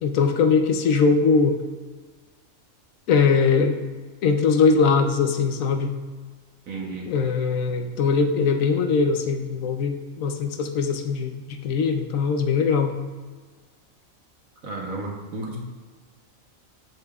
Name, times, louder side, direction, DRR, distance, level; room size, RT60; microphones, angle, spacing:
voice 1, 0.0-1.6 3.1-3.8 4.2-5.9 7.1-12.9, left 5 dB, 80° left, 6 dB, 1.0 m, -21 dB
voice 2, 6.7-7.1 14.6-15.6, right 2 dB, 85° right, 0 dB, 1.5 m, -33 dB
13.5 x 5.3 x 2.4 m, 1.4 s
omnidirectional pair, 1.4 m